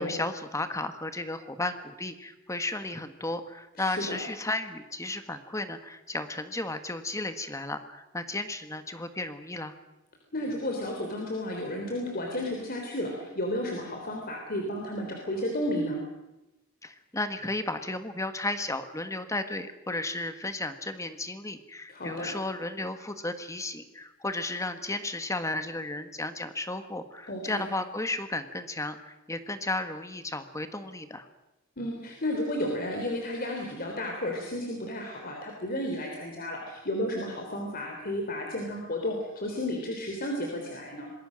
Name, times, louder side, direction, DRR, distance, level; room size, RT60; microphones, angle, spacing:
voice 1, 0.0-9.7 16.8-31.3, left 2 dB, 15° left, 9 dB, 1.6 m, -34 dB
voice 2, 3.8-4.2 10.3-16.0 21.9-22.3 27.3-27.7 31.8-41.1, left 1 dB, 45° left, 1 dB, 3.5 m, -32 dB
26.0 x 21.0 x 6.5 m, 0.99 s
head